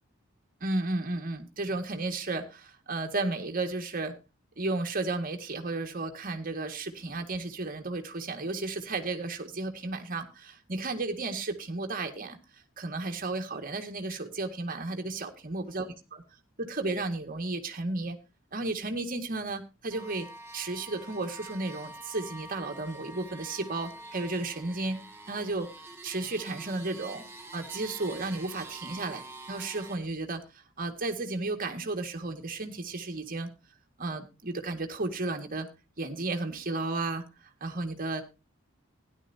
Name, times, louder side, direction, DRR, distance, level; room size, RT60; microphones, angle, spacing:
voice 1, 0.6-4.2 4.6-12.4 12.8-15.9 16.1-16.2 16.6-18.2 18.5-25.7 26.0-27.2 27.5-30.4 30.8-33.5 34.0-35.7 36.0-38.2, right 2 dB, 45° right, 5 dB, 1.9 m, -33 dB
sound 1, 19.9-30.0, right 2 dB, 10° right, 2.1 m, -46 dB
16.5 x 11.0 x 2.7 m, 0.27 s
head